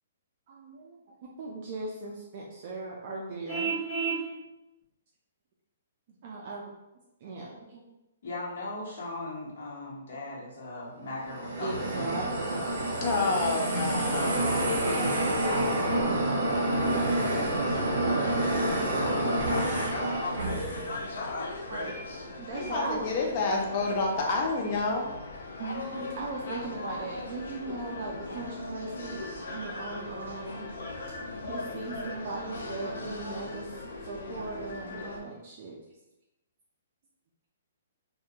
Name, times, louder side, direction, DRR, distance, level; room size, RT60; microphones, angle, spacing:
voice 1, 0.5-3.7 6.2-6.6 7.2-7.6 11.6-12.7 21.4-22.0 22.4-23.1 25.6-29.2 29.5-30.7 31.4-35.8, right 3 dB, 35° right, -2 dB, 0.3 m, -38 dB
Vehicle horn car horn honking, 3.5-4.3, right 5 dB, 15° right, 0.8 m, -30 dB
voice 2, 8.2-12.3 14.1-21.5, left 2 dB, 60° left, -5 dB, 0.9 m, -38 dB
sound 1, 11.2-20.9, right 1 dB, 55° right, 0.7 m, -28 dB
voice 3, 13.0-14.6 14.9-15.5 22.5-25.2, left 3 dB, 30° left, 0 dB, 0.4 m, -29 dB
sound 2, 16.5-35.2, left 2 dB, 85° left, 0.5 m, -40 dB
2.4 x 2.2 x 2.8 m, 0.97 s
hypercardioid pair, 175°, 0 cm